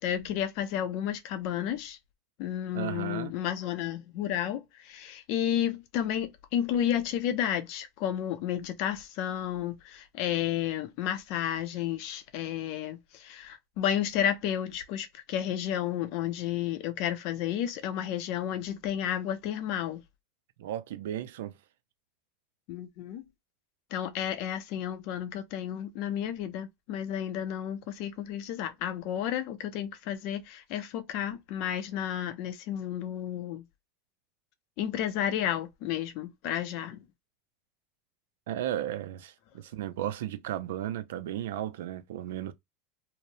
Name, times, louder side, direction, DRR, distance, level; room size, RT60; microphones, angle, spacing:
voice 1, 0.0-2.0 2.4-20.0 22.7-23.2 23.9-33.6 34.8-37.0, left 10 dB, 50° left, 0.4 m, -32 dB
voice 2, 2.7-3.3 20.6-21.5 38.5-42.5, right 12 dB, 85° right, 0.3 m, -34 dB
2.8 x 2.0 x 2.6 m
supercardioid pair, 165°, 0 cm